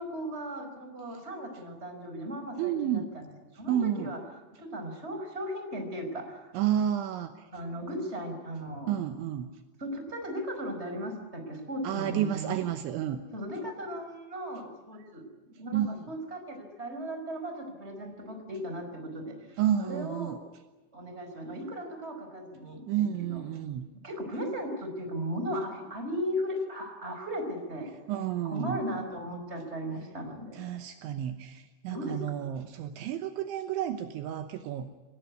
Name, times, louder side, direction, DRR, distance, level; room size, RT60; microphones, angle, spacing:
voice 1, 0.0-2.9 3.5-4.2 4.5-6.5 7.5-8.9 9.8-12.6 13.3-20.4 20.9-22.9 23.3-23.4 24.0-27.9 28.4-30.7 31.1-31.2 31.9-32.2, equal, 15° right, 5 dB, 4.4 m, -36 dB
voice 2, 2.6-3.1 3.7-4.1 6.5-7.5 8.9-9.6 11.8-13.2 15.7-16.1 19.6-20.4 22.9-23.9 28.1-28.8 30.5-34.9, right 10 dB, 75° right, 8 dB, 3.3 m, -31 dB
26.5 x 18.5 x 9.5 m, 1.2 s
omnidirectional pair, 5.7 m